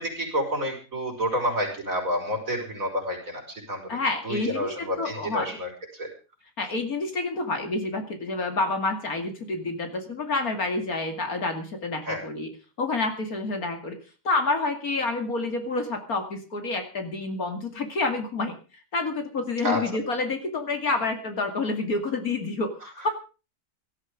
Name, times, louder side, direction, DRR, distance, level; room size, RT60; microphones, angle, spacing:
voice 1, 0.0-4.0 4.2-6.1 12.0-12.2 19.6-19.8, equal, 50° right, 1 dB, 6.0 m, -29 dB
voice 2, 3.9-5.6 6.6-12.5 12.8-14.0 14.2-18.5 18.9-23.1, left 3 dB, 60° left, 6 dB, 2.8 m, -28 dB
17.5 x 13.0 x 5.1 m, 0.35 s
omnidirectional pair, 1.8 m